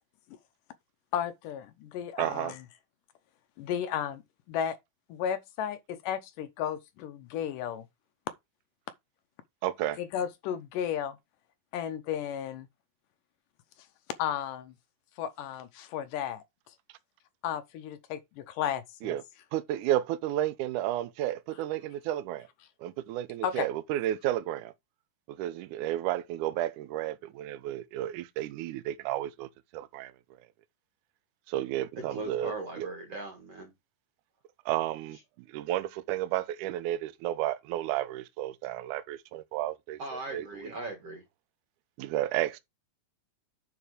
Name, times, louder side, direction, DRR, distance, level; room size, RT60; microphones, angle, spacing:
voice 1, 1.1-2.6 3.6-4.2 4.5-4.8 5.1-7.9 10.0-11.2 11.7-12.7 14.2-14.7 15.2-16.4 17.4-19.1 23.4-23.7, left 9 dB, 75° left, 2.0 m, -33 dB
voice 2, 2.2-2.6 9.6-10.0 19.0-19.2 19.5-22.5 22.8-24.7 25.3-30.1 31.5-32.9 34.7-35.2 35.5-40.7 42.0-42.6, right 13 dB, 75° right, 1.9 m, -32 dB
voice 3, 32.1-33.7 40.0-41.2, right 2 dB, 45° right, 2.6 m, -39 dB
9.4 x 4.3 x 5.1 m
omnidirectional pair, 4.5 m